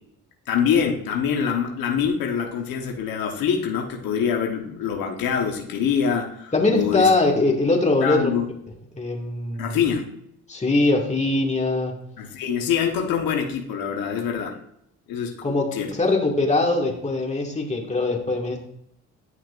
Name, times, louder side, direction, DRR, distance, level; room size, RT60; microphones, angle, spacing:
voice 1, 0.5-7.1 7.4-7.5 8.0-8.5 9.6-10.1 12.2-14.6 15.1-15.3 15.7-15.9, left 7 dB, 85° left, 2 dB, 1.2 m, -24 dB
voice 2, 6.5-8.3 8.9-9.8 10.5-12.0 15.4-18.6, left 2 dB, 20° left, -1 dB, 2.1 m, -22 dB
11.0 x 5.9 x 2.5 m, 0.74 s
cardioid pair, 75°, 34 cm